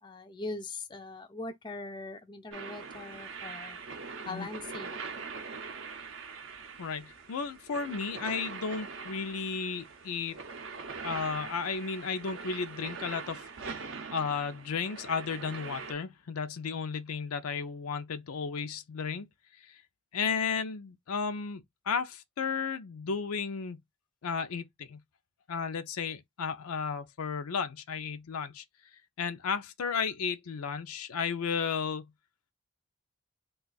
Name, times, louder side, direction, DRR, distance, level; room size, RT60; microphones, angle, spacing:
voice 1, 0.0-3.8 4.3-5.0, left 3 dB, 20° left, 0.3 m, -41 dB
sound 1, 2.5-15.9, right 5 dB, 60° right, 0.5 m, -42 dB
voice 2, 6.8-10.4 11.0-19.3 19.6-19.7 20.1-23.8 24.2-25.0 25.5-28.6 29.2-32.1, left 5 dB, 85° left, 0.5 m, -34 dB
2.4 x 2.3 x 3.8 m
head